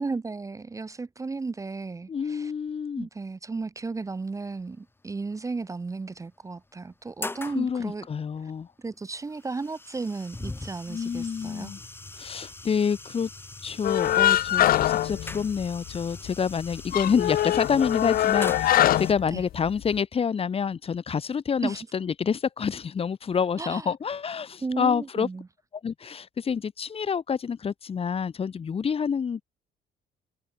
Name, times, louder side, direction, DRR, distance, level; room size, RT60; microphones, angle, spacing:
voice 1, 0.0-2.5 3.0-8.1 8.4-8.5 8.8-11.7 19.3-19.4 21.6-21.9 23.6-23.9 24.6-25.5, right 3 dB, 20° right, 1.1 m, -34 dB
voice 2, 2.1-3.1 7.5-8.7 10.9-11.8 12.2-13.3 13.6-25.3 25.8-29.4, left 6 dB, 35° left, 2.1 m, -28 dB
sound 1, 4.1-4.4 5.6-5.7 6.2-6.3 6.8-7.6 8.7-19.1, left 2 dB, 15° left, 3.3 m, -41 dB
sound 2, 13.8-16.0 16.2-16.3 16.7-19.9, left 13 dB, 60° left, 0.9 m, -23 dB
cardioid pair, 110°, 17 cm